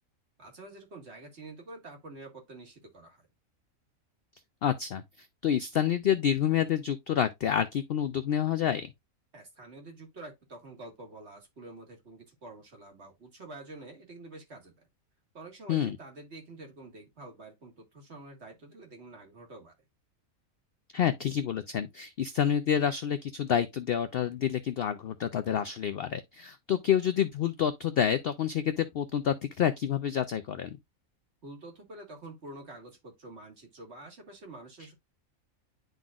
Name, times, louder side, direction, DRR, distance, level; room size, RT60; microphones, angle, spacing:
voice 1, 0.4-3.3 9.3-14.9 15.3-19.8 31.4-34.9, right 2 dB, 50° right, 1.9 m, -47 dB
voice 2, 4.6-5.0 5.4-8.9 15.7-16.0 20.9-30.8, left 9 dB, 65° left, 0.6 m, -28 dB
10.5 x 3.9 x 2.4 m
omnidirectional pair, 1.5 m